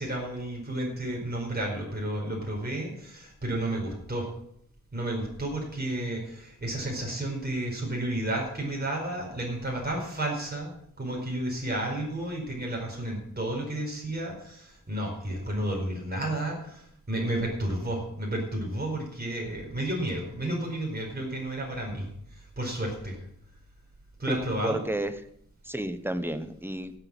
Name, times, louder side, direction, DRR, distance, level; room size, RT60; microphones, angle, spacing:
voice 1, 0.0-4.3 4.9-23.2 24.2-24.9, right 1 dB, 30° right, -1 dB, 4.7 m, -32 dB
voice 2, 24.3-25.1 25.6-26.9, right 1 dB, 5° right, 10 dB, 1.0 m, -31 dB
16.5 x 8.2 x 6.1 m, 0.71 s
wide cardioid pair, 90°, 32 cm